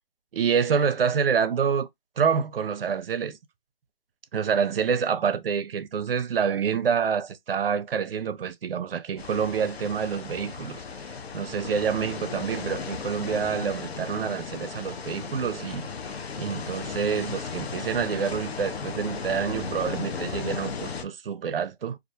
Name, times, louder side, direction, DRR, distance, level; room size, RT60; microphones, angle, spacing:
voice 1, 0.3-1.9 2.2-3.4 4.3-15.9 16.4-22.0, right 6 dB, 60° right, 0.5 m, -27 dB
sound 1, 9.2-21.0, left 5 dB, 75° left, 0.6 m, -35 dB
2.4 x 2.2 x 2.6 m
hypercardioid pair, 170°, 32 cm